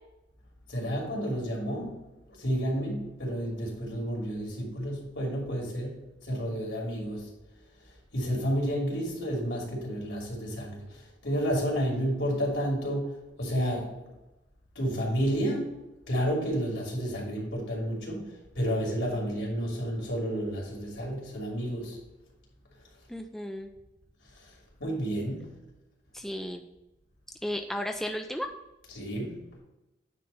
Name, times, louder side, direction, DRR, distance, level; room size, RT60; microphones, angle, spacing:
voice 1, 0.7-2.0 2.4-7.3 8.1-10.8 11.2-13.9 14.7-15.7 16.1-18.3 18.5-22.0 24.8-25.4 28.9-29.4, equal, 80° left, -3 dB, 2.9 m, -30 dB
voice 2, 23.1-23.7 26.1-26.6 27.4-28.5, left 1 dB, ahead, 4 dB, 0.4 m, -34 dB
9.4 x 3.3 x 5.5 m, 0.98 s
head